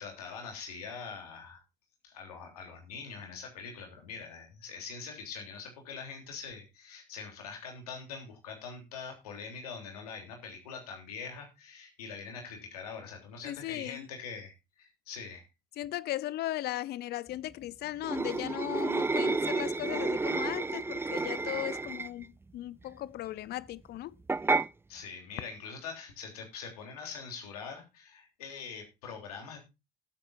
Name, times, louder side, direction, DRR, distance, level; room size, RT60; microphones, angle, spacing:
voice 1, 0.0-1.6 2.0-15.5 24.9-29.6, left 5 dB, 85° left, 3.3 m, -43 dB
voice 2, 13.4-14.1 15.8-24.1, left 14 dB, 60° left, 0.7 m, -37 dB
sound 1, 18.0-22.3 24.3-24.7, right 3 dB, 10° right, 0.5 m, -30 dB
18.5 x 8.7 x 2.6 m
hypercardioid pair, 60°, 19 cm